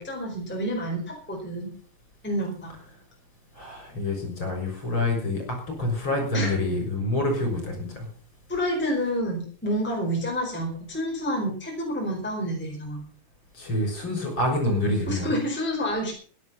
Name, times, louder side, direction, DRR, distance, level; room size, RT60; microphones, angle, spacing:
voice 1, 0.0-1.7 2.2-2.7 6.3-6.5 8.5-13.0 15.1-16.1, equal, 5° left, -1 dB, 4.4 m, -28 dB
voice 2, 3.6-8.1 13.5-15.3, left 1 dB, 35° left, 3 dB, 7.1 m, -27 dB
16.5 x 11.0 x 5.6 m, 0.42 s
omnidirectional pair, 3.7 m